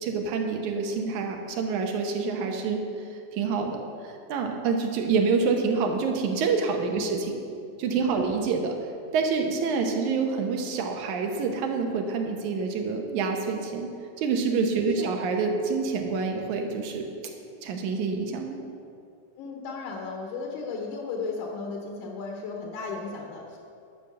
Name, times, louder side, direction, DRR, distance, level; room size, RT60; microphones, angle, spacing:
voice 1, 0.0-2.8 3.1-3.8 4.0-7.4 7.8-8.7 9.1-13.9 14.2-17.1 17.6-18.6, right 5 dB, 80° right, 3 dB, 2.4 m, -27 dB
voice 2, 14.8-15.1 19.4-23.6, left 4 dB, 80° left, 1 dB, 2.4 m, -35 dB
11.0 x 6.3 x 6.8 m, 2.4 s
omnidirectional pair, 3.5 m